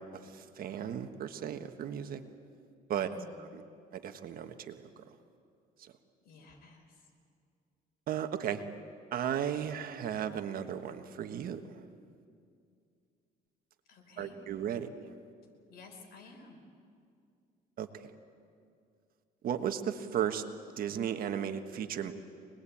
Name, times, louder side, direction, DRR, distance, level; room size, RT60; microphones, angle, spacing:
voice 1, 0.0-2.2 2.9-3.1 3.4-3.6 3.9-4.8 5.8-5.9 8.1-8.6 9.1-11.8 14.2-14.9 17.8-18.1 19.4-20.4 20.8-22.1, right 9 dB, 60° right, 8 dB, 1.4 m, -35 dB
voice 2, 2.9-3.4 6.2-7.1 13.9-14.4 15.7-16.6, left 3 dB, 65° left, 2 dB, 5.0 m, -53 dB
25.0 x 20.5 x 8.7 m, 2.4 s
cardioid pair, 110°, 17 cm